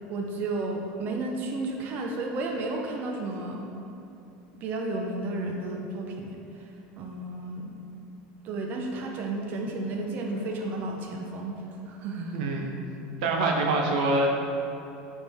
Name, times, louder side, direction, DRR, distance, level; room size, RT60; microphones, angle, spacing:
voice 1, 0.1-3.6 4.5-6.7 7.0-7.8 8.4-11.6 11.8-12.5, right 2 dB, 45° right, 1 dB, 0.8 m, -32 dB
voice 2, 12.3-12.9 13.2-14.3, right 2 dB, 80° right, 1 dB, 0.8 m, -25 dB
8.8 x 3.6 x 3.5 m, 2.9 s
supercardioid pair, 130°, 5 cm